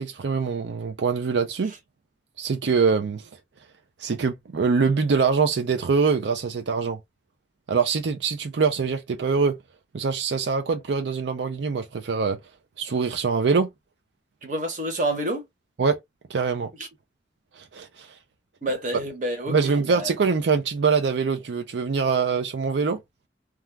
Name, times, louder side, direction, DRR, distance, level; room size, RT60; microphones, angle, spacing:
voice 1, 0.0-1.7 2.4-3.2 4.0-7.0 7.7-9.6 9.9-12.4 12.8-13.7 15.8-16.0 16.3-16.7 17.6-18.1 19.5-23.0, right 5 dB, 90° right, 0.5 m, -24 dB
voice 2, 14.4-15.4 16.8-16.9 18.6-20.1, right 1 dB, 45° right, 0.9 m, -28 dB
2.3 x 2.3 x 3.1 m
head